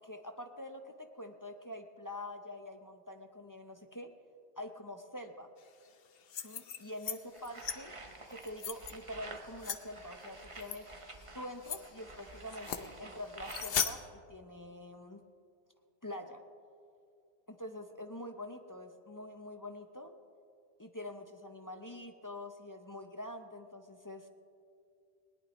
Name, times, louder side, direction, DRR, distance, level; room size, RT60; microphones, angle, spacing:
voice 1, 0.0-4.1 4.6-5.5 6.4-7.9 8.3-10.9 11.3-14.0 14.3-15.2 16.0-16.4 17.5-20.1 20.8-24.3, left 1 dB, 25° left, 5 dB, 0.5 m, -45 dB
sound 1, 6.2-7.2 7.4-7.8 8.3-8.9 9.6-9.8 10.6-10.8 11.2-11.3 11.6-11.8 12.5-12.9 13.5-13.9, left 8 dB, 60° left, 0.9 m, -36 dB
sound 2, 7.3-14.1, right 2 dB, 30° right, 1.0 m, -50 dB
20.0 x 18.5 x 3.1 m, 2.4 s
omnidirectional pair, 1.2 m